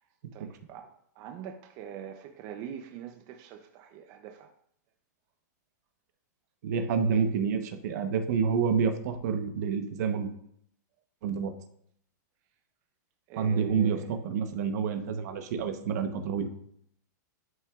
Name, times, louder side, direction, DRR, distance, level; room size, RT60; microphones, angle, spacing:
voice 1, 0.3-4.5 13.3-14.1, right 8 dB, 35° right, 0.6 m, -44 dB
voice 2, 6.6-10.3 11.2-11.5 13.4-16.5, right 6 dB, 65° right, 1.0 m, -28 dB
11.0 x 5.6 x 2.4 m
hypercardioid pair, 145°, 10 cm